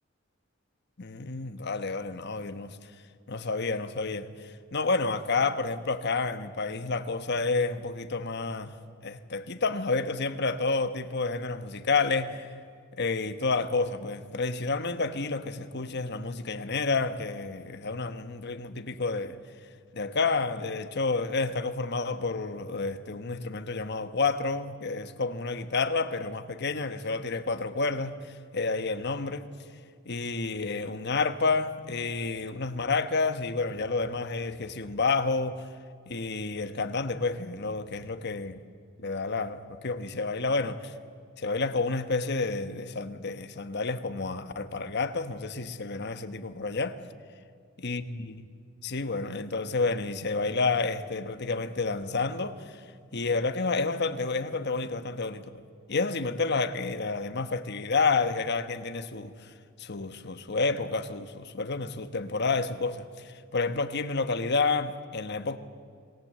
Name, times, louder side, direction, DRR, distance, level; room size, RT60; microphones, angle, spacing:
voice 1, 1.0-2.8 3.3-8.7 9.0-12.5 13.0-19.4 19.9-29.5 30.0-35.7 36.1-38.6 39.0-40.9 41.4-47.0 47.8-48.3 48.8-52.8 53.1-55.6 55.9-59.5 59.8-65.6, left 3 dB, 55° left, 1.2 m, -30 dB
26.5 x 18.0 x 7.7 m
head